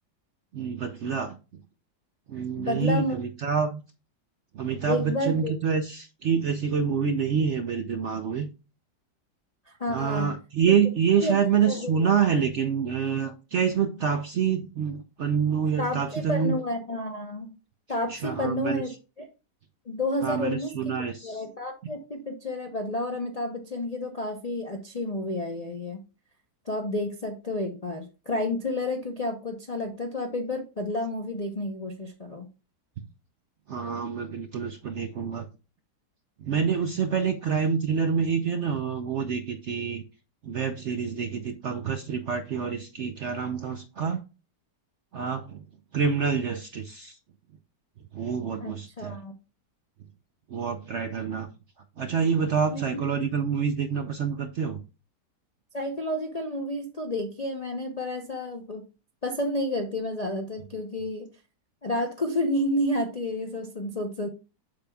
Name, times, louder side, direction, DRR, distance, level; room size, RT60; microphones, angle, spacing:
voice 1, 0.5-1.4 2.3-3.8 4.5-8.5 9.9-16.5 18.1-18.8 20.2-21.4 33.7-35.5 36.4-40.0 40.4-44.2 45.1-45.6 45.9-47.2 48.1-49.2 50.5-51.5 52.0-54.8, right 6 dB, 65° right, 0.7 m, -27 dB
voice 2, 2.6-3.2 4.9-5.5 9.7-10.3 11.2-11.4 11.7-12.1 15.8-17.5 17.9-19.2 19.9-21.0 21.2-26.0 26.7-32.5 48.6-49.3 52.7-53.0 55.7-58.8 59.2-61.3 61.8-64.3, left 1 dB, 45° left, 0.5 m, -30 dB
7.6 x 6.9 x 2.3 m
omnidirectional pair, 1.8 m